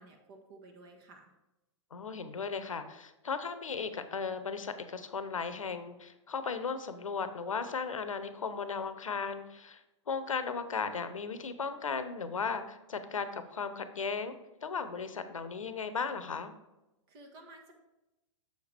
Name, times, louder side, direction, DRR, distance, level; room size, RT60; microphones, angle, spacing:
voice 1, 0.0-1.3 17.1-17.7, right 2 dB, 45° right, 3 dB, 1.5 m, -53 dB
voice 2, 1.9-14.4 14.6-16.5, left 5 dB, 90° left, 11 dB, 0.8 m, -36 dB
6.7 x 6.5 x 3.4 m, 0.99 s
hypercardioid pair, 115°, 16 cm